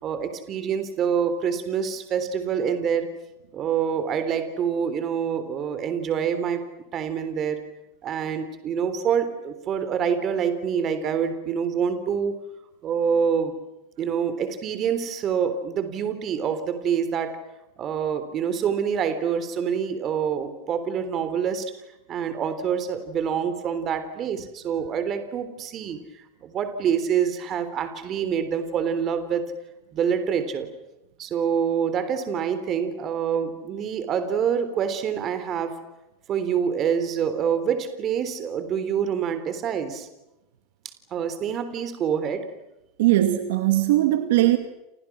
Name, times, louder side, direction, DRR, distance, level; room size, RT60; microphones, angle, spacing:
voice 1, 0.0-3.1 3.5-6.6 6.9-7.6 8.0-12.4 12.8-13.5 14.0-17.4 17.8-21.6 22.1-26.0 26.4-29.4 29.9-30.7 31.2-35.7 36.3-40.1 41.1-42.4, right 7 dB, 30° right, 3.6 m, -26 dB
voice 2, 43.0-44.6, right 15 dB, 75° right, 2.4 m, -19 dB
29.5 x 28.5 x 6.2 m
supercardioid pair, 165°, 0 cm